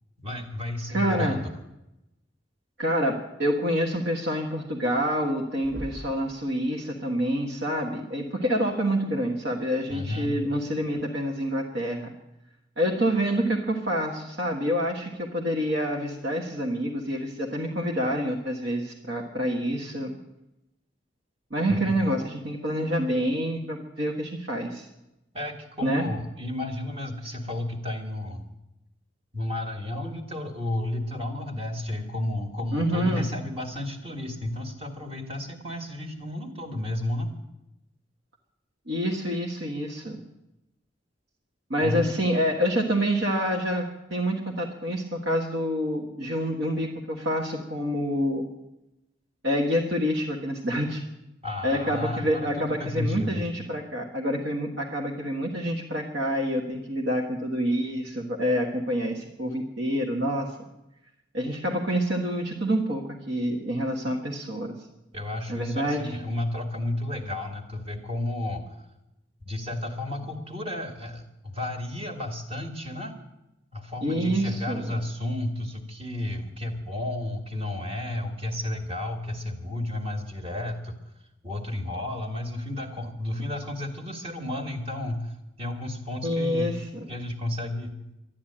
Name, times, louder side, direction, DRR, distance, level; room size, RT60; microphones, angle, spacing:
voice 1, 0.2-1.5 9.9-10.3 21.7-21.9 25.3-28.4 29.3-37.3 41.8-42.1 51.4-53.4 65.1-68.8 69.5-73.1 73.7-80.9 81.4-86.7 87.1-87.9, left 1 dB, 30° right, 4 dB, 1.8 m, -32 dB
voice 2, 0.9-1.4 2.8-12.1 12.8-20.2 21.5-24.9 25.8-26.1 32.7-33.3 38.9-40.2 41.7-43.8 44.1-48.5 49.4-51.0 51.6-60.5 61.3-64.8 65.5-66.1 74.0-74.9 86.2-87.0, equal, 65° right, -1 dB, 1.5 m, -27 dB
sound 1, 5.6-6.3 8.0-8.1 9.9-10.1 10.9-11.0, equal, 50° right, 1.7 m, -40 dB
12.5 x 10.5 x 8.8 m, 0.93 s
head